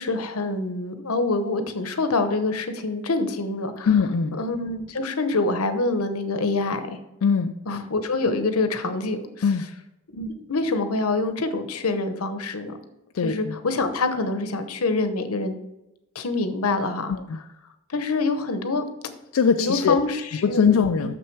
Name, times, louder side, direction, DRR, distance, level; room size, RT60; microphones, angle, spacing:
voice 1, 0.0-3.9 4.4-7.0 7.7-9.2 10.1-12.8 13.2-15.5 16.1-17.2 17.9-18.9 19.6-20.7, left 3 dB, 85° left, 9 dB, 0.9 m, -25 dB
voice 2, 3.9-4.4 7.2-7.5 9.4-9.6 13.1-13.6 17.1-17.4 19.3-19.9 20.4-21.1, left 6 dB, 70° left, 6 dB, 0.4 m, -21 dB
6.7 x 6.2 x 4.6 m, 0.93 s
head